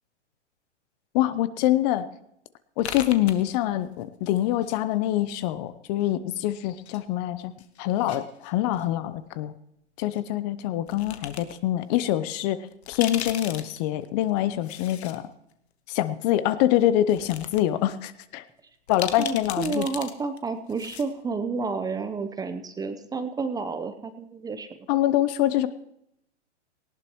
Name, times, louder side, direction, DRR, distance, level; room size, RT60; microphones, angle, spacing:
voice 1, 1.1-2.0 2.8-7.5 7.8-9.5 10.0-15.3 15.9-18.4 18.9-19.9 24.9-25.7, left 13 dB, 35° left, 14 dB, 0.8 m, -25 dB
sound 1, 2.8-4.0 4.3-5.2 6.0-7.0 7.3-8.9 10.1-10.2 10.9-11.5 12.0-12.1 12.7-15.2 15.5-15.6 16.5-16.6 17.0-17.6 17.9-18.0 18.9-20.1 20.4-20.5 20.7-21.1, left 9 dB, 65° left, 1.6 m, -38 dB
voice 2, 19.2-24.7, right 4 dB, 10° right, 9 dB, 0.8 m, -30 dB
18.5 x 17.5 x 3.1 m, 0.77 s
hypercardioid pair, 120°, 35 cm